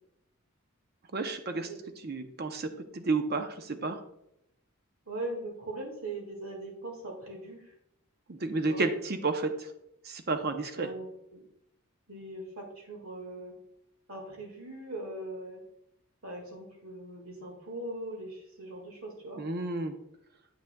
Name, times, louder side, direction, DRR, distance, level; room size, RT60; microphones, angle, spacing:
voice 1, 1.1-1.7 2.0-4.0 8.3-9.7 10.0-10.9 19.4-19.9, right 3 dB, 45° right, 7 dB, 0.6 m, -31 dB
voice 2, 5.1-7.7 8.7-8.9 10.7-11.4 12.1-13.5 14.1-15.6 16.2-19.4, right 2 dB, 75° right, 1 dB, 1.8 m, -40 dB
8.2 x 6.0 x 2.2 m, 0.80 s
head